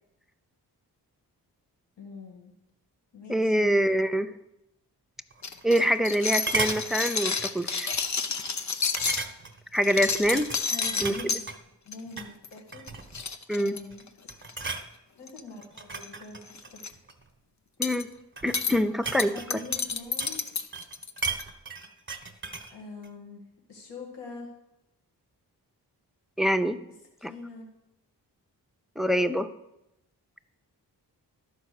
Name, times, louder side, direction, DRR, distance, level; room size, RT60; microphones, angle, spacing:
voice 1, 2.0-2.5 3.1-3.7 10.6-11.4 11.9-12.8 13.5-14.3 15.2-16.7 19.2-20.4 22.7-23.4 23.7-24.5 27.2-27.7, left 3 dB, 90° left, 0 dB, 1.8 m, -43 dB
voice 2, 3.3-4.3 5.6-7.9 9.7-10.5 11.0-11.2 13.5-13.8 17.8-18.1 18.4-19.6 26.4-26.8 27.2-27.3 29.0-29.5, equal, ahead, 11 dB, 0.5 m, -25 dB
sound 1, 5.3-6.2 6.5-6.9 7.4-7.6 7.9-8.0 9.0-9.6 10.0-11.6 12.1-12.3 12.7-13.2 13.8-14.0 14.3-14.9 15.6-17.2 18.0-20.5 20.7-22.7 23.0-23.1, right 4 dB, 30° right, 1.2 m, -35 dB
sound 2, 5.4-9.2 9.7-11.4 11.9-12.2 12.4-12.6 12.9-13.0 13.1-14.5 15.3-15.6 15.9-16.1 16.5-16.9 17.8-18.0 18.5-18.7 19.2-21.4, left 5 dB, 45° left, 0.8 m, -30 dB
11.5 x 5.2 x 6.5 m, 0.90 s
cardioid pair, 60°, 41 cm